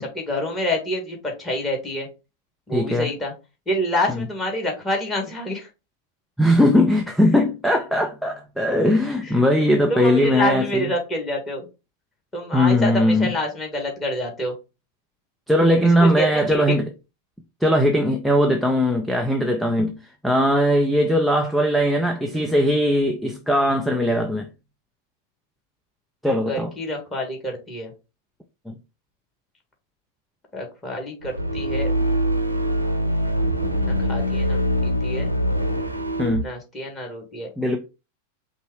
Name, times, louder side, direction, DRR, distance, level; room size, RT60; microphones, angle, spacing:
voice 1, 0.0-2.1 2.7-3.3 3.7-5.7 7.3-7.4 9.2-9.3 9.9-11.7 12.3-14.5 15.8-16.8 26.4-27.9 30.5-31.9 33.8-35.3 36.4-37.5, left 1 dB, 15° left, 1.7 m, -27 dB
voice 2, 2.7-3.1 4.1-4.2 6.4-10.9 12.5-13.3 15.5-16.9 17.6-20.0 20.2-24.5 26.2-26.7 28.7-28.8 36.2-36.5 37.6-37.8, equal, ahead, 0.6 m, -19 dB
sound 1, 31.2-36.4, equal, 90° left, 0.5 m, -23 dB
5.4 x 2.1 x 4.7 m
figure-of-eight pair, 90°, 0 cm